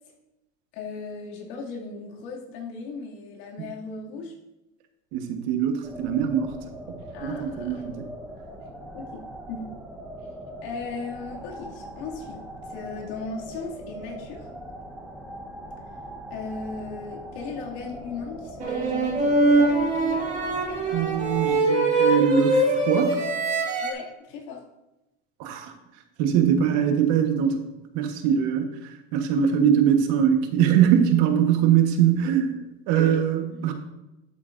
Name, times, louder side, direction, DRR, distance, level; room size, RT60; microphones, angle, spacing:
voice 1, 0.7-4.3 7.1-7.8 8.9-9.8 10.6-14.5 16.3-20.0 23.8-24.6 28.2-28.3 32.9-33.2 33.5-33.6, left 4 dB, 70° left, -2 dB, 2.5 m, -37 dB
voice 2, 5.1-6.6 7.2-8.0 20.9-23.2 25.4-25.7 26.2-27.6 27.9-32.6 32.9-33.7, right 8 dB, 65° right, 5 dB, 1.3 m, -22 dB
sound 1, 5.8-21.6, equal, 5° right, 1.0 m, -41 dB
sound 2, 18.6-23.9, right 2 dB, 20° right, 2.1 m, -23 dB
11.5 x 8.3 x 2.6 m, 0.94 s
cardioid pair, 145°, 32 cm